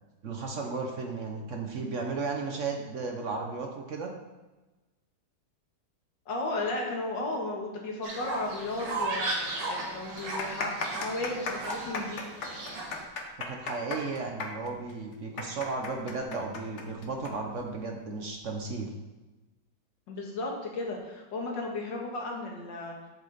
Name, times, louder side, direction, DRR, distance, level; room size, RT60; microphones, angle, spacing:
voice 1, 0.2-4.1 13.5-18.9, right 4 dB, 50° right, 2 dB, 1.0 m, -34 dB
voice 2, 6.3-9.2 9.7-12.2 20.1-23.0, left 2 dB, 90° left, 0 dB, 2.2 m, -34 dB
Fowl, 8.0-13.0, right 2 dB, 85° right, 2.2 m, -35 dB
sound 1, 9.0-9.1 9.3-9.4 10.1-17.3 17.6-17.7 18.5-18.7, left 4 dB, 45° left, 1.2 m, -36 dB
7.9 x 7.5 x 4.0 m, 1.1 s
omnidirectional pair, 1.9 m